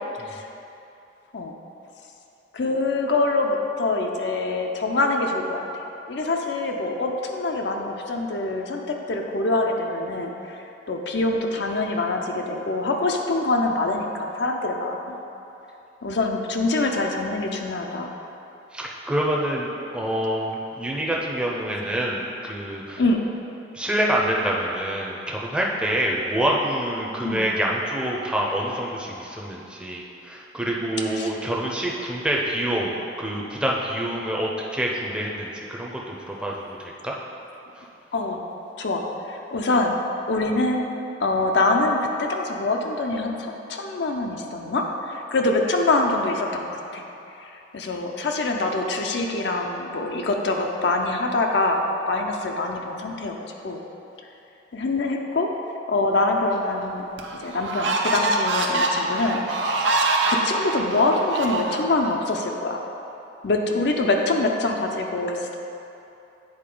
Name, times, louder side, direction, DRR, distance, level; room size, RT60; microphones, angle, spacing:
voice 1, 2.5-15.2 16.0-18.1 23.0-23.2 27.2-27.4 31.1-31.3 38.1-38.4 38.8-40.0 40.3-40.9 41.2-47.0 47.4-53.3 53.6-53.8 54.7-55.5 55.9-57.0 57.4-59.4 60.3-62.8 63.4-65.5, left 2 dB, 70° left, 2 dB, 0.5 m, -25 dB
voice 2, 18.7-23.0 23.7-37.1, right 1 dB, 5° right, -3 dB, 0.6 m, -26 dB
sound 1, 56.5-56.6 57.2-62.1, right 2 dB, 85° right, 0.6 m, -24 dB
8.7 x 4.1 x 3.8 m, 2.9 s
head